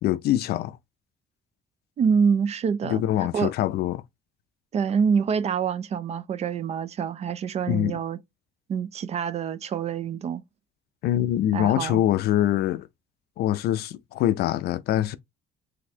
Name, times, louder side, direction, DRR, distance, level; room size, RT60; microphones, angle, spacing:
voice 1, 0.0-0.8 2.8-4.0 7.7-7.9 11.0-12.9 13.4-15.2, left 12 dB, 70° left, 0.4 m, -24 dB
voice 2, 2.0-3.0 3.3-3.5 4.7-8.2 8.7-10.4 11.5-12.0, right 6 dB, 40° right, 0.4 m, -26 dB
4.0 x 2.7 x 2.7 m
cardioid pair, 110°, 17 cm